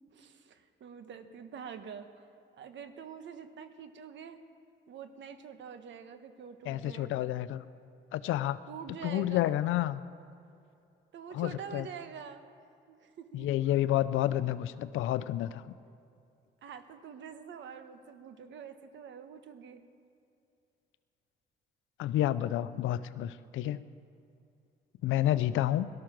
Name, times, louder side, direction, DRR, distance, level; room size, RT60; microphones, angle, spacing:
voice 1, 0.1-2.3 2.5-4.4 4.9-7.3 8.7-9.6 11.1-12.5 12.9-13.8 16.6-19.8, right 7 dB, 70° right, 9 dB, 1.2 m, -46 dB
voice 2, 6.7-7.6 8.1-8.6 9.0-10.0 11.3-11.9 13.3-15.6 22.0-23.8 25.0-25.9, left 13 dB, 85° left, 15 dB, 0.6 m, -29 dB
18.0 x 12.5 x 6.0 m, 2.6 s
cardioid pair, 90°, 20 cm